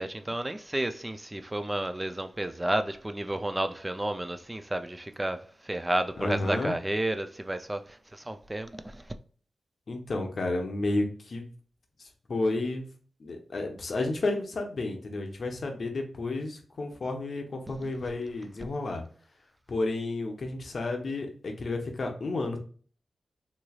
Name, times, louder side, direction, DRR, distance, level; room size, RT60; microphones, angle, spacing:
voice 1, 0.0-5.4 5.7-7.8 8.3-8.7, right 1 dB, 15° right, 0.3 m, -31 dB
voice 2, 6.2-6.8 9.9-11.5 12.0-12.9 13.2-19.0 19.7-22.6, left 2 dB, 50° left, 0.8 m, -31 dB
3.9 x 3.1 x 2.3 m
wide cardioid pair, 135°, 0 cm